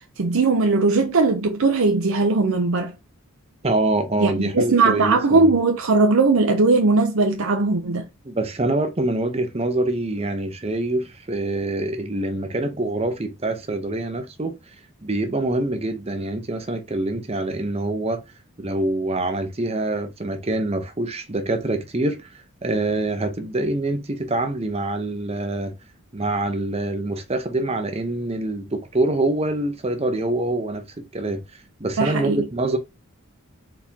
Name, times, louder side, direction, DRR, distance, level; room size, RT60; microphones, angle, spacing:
voice 1, 0.2-2.9 4.2-8.0 32.0-32.4, right 3 dB, 75° right, 0.6 m, -19 dB
voice 2, 3.6-5.5 8.2-18.2 18.6-22.3 22.6-25.7 26.1-32.8, right 2 dB, 30° right, 0.7 m, -25 dB
4.3 x 4.1 x 2.8 m
head